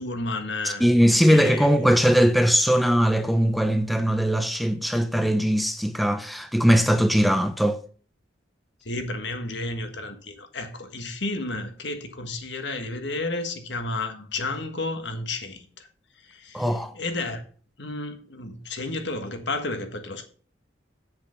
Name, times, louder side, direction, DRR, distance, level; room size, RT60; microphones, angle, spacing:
voice 1, 0.0-2.1 8.8-15.9 16.2-17.4 17.8-20.3, left 2 dB, 70° left, 1.5 m, -32 dB
voice 2, 0.6-7.8 16.5-16.9, equal, ahead, 0.5 m, -20 dB
7.9 x 6.9 x 5.8 m
head